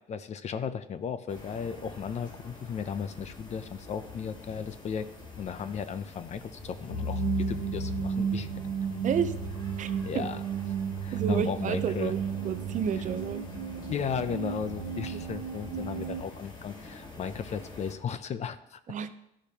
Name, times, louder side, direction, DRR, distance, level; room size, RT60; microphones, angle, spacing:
voice 1, 0.1-5.1 5.4-8.5 10.0-10.4 11.0-12.1 13.9-18.8, left 7 dB, 40° left, 12 dB, 0.5 m, -35 dB
sound 1, 1.3-17.9, left 2 dB, 25° left, 1.7 m, -47 dB
sound 2, 6.9-16.2, right 5 dB, 85° right, 1.1 m, -33 dB
voice 2, 9.8-10.2 11.1-12.2 12.4-13.4 15.1-15.2 18.9-19.1, right 7 dB, 50° right, 11 dB, 0.5 m, -30 dB
12.0 x 5.0 x 2.8 m, 0.82 s
cardioid pair, 110°, 17 cm